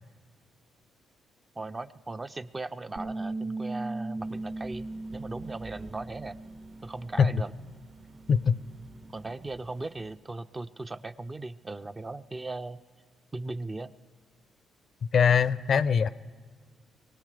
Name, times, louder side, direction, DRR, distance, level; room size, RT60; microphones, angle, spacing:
voice 1, 1.6-6.4 6.8-7.5 9.1-12.8 13.3-13.9, right 2 dB, 25° right, 11 dB, 0.5 m, -38 dB
Bass guitar, 3.0-7.3 7.6-9.2, right 2 dB, 70° right, 2.7 m, -38 dB
sound 1, 4.2-10.2, right 3 dB, 55° right, 1.4 m, -52 dB
voice 2, 8.3-8.6 15.1-16.1, left 6 dB, 55° left, 16 dB, 0.4 m, -22 dB
24.0 x 17.5 x 3.3 m, 1.5 s
cardioid pair, 90°, 0 cm